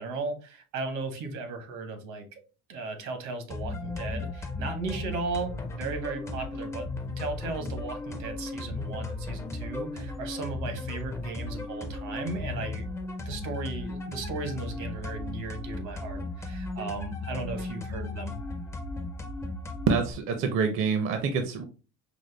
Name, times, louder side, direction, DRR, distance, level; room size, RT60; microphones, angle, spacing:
voice 1, 0.0-2.4 2.7-6.9 7.2-12.9 13.2-18.4, right 4 dB, 75° right, 1.0 m, -36 dB
sound 1, 3.5-20.1, left 3 dB, 10° left, 0.4 m, -36 dB
voice 2, 19.9-21.6, right 5 dB, 45° right, 0.5 m, -26 dB
5.0 x 2.1 x 3.2 m
cardioid pair, 170°, 29 cm